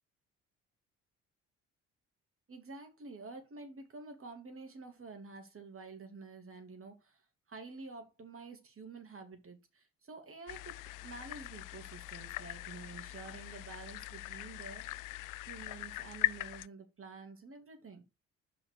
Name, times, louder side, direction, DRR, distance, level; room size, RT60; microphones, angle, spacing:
voice 1, 2.5-7.2 7.5-10.8 11.0-14.8 15.5-18.0, right 3 dB, 35° right, 2.9 m, -49 dB
sound 1, 10.5-16.7, left 19 dB, 55° left, 0.4 m, -40 dB
5.7 x 5.2 x 6.7 m
hypercardioid pair, 55°, 37 cm